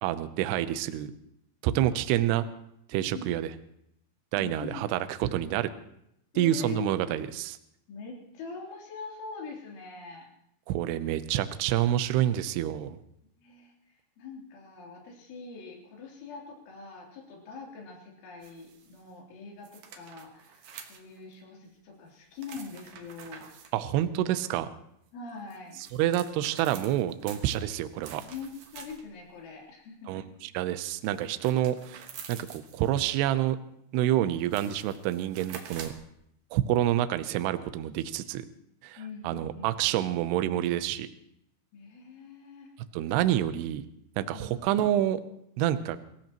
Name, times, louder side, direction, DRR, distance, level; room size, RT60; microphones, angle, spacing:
voice 1, 0.0-1.1 1.6-2.4 2.9-3.5 4.3-5.7 6.4-7.6 10.7-13.0 23.7-24.7 26.0-28.2 30.1-33.6 33.9-35.9 36.5-38.5 38.8-39.0 39.2-41.1 42.9-43.8 44.2-45.2 45.6-46.0, right 12 dB, 85° right, 11 dB, 2.3 m, -28 dB
voice 2, 4.4-4.8 6.3-7.2 7.9-10.3 13.4-13.7 14.2-23.5 25.1-25.8 28.3-30.3 39.0-39.7 41.7-42.7 44.3-44.9, left 4 dB, 70° left, -1 dB, 5.7 m, -43 dB
sound 1, 18.4-19.0 19.6-21.3 22.4-23.7 25.3-29.2 31.0-33.0 34.0-34.1 34.4-36.1, right 7 dB, 70° right, 2.1 m, -47 dB
24.5 x 16.5 x 3.0 m, 0.76 s
omnidirectional pair, 5.8 m